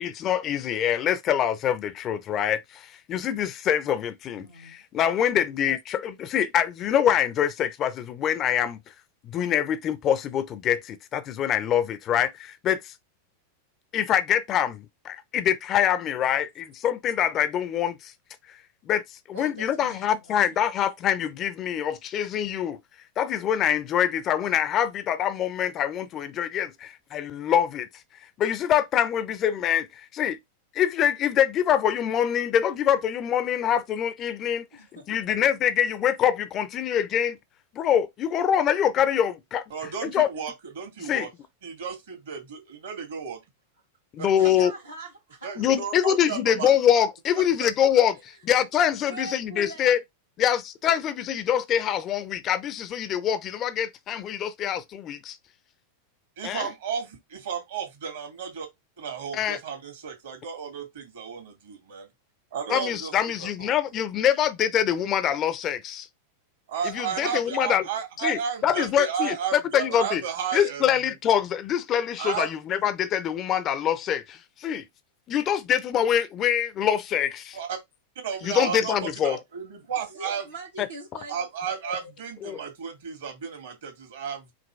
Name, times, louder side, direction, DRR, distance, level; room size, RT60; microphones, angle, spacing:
voice 1, 0.0-8.8 9.2-12.9 13.9-18.1 18.9-19.0 19.3-22.8 23.2-27.9 28.4-29.9 30.1-30.4 30.7-34.7 35.1-37.4 37.7-39.6 40.0-40.3 41.1-41.3 44.2-44.7 45.6-48.1 48.5-50.0 50.4-55.4 56.4-56.7 59.3-59.6 62.7-66.1 66.8-67.9 68.2-70.2 70.5-74.8 75.3-77.6 78.4-79.4 82.4-82.6, left 9 dB, 30° left, 0.5 m, -25 dB
voice 2, 4.3-4.8 19.3-20.6 34.7-35.2 41.0-41.1 44.3-45.5 48.1-48.2 49.1-50.0 66.9-68.3 79.9-81.5 81.8-82.1, right 2 dB, 80° right, 1.5 m, -43 dB
voice 3, 39.7-41.3 41.6-43.4 44.2-44.3 45.4-46.8 47.4-47.7 56.4-58.7 59.0-62.1 62.5-63.1 63.4-63.7 66.7-70.8 72.2-72.5 77.5-77.8 78.2-80.4 81.3-84.5, right 7 dB, 60° right, 1.9 m, -33 dB
5.2 x 2.9 x 3.2 m
figure-of-eight pair, 90°, 0 cm